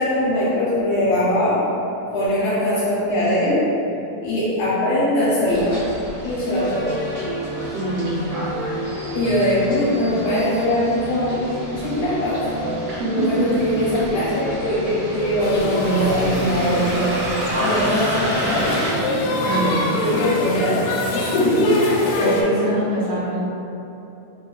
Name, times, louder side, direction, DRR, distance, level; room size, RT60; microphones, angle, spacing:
voice 1, 0.0-1.6 2.1-3.7 4.2-5.8 6.2-6.9 9.1-12.7 13.1-18.8 19.9-20.9 21.1-21.8, left 1 dB, 75° left, -10 dB, 2.1 m, -21 dB
Bus, 5.5-18.9, equal, 85° right, 0.8 m, -31 dB
sound 1, 6.6-20.3, equal, 55° left, 1.3 m, -31 dB
voice 2, 7.7-8.5 13.0-13.1 19.4-20.0 22.2-23.4, right 1 dB, 70° right, -12 dB, 1.6 m, -24 dB
sound 2, 15.4-22.4, left 2 dB, 90° left, 2.2 m, -26 dB
5.2 x 2.6 x 2.4 m, 2.9 s
omnidirectional pair, 3.7 m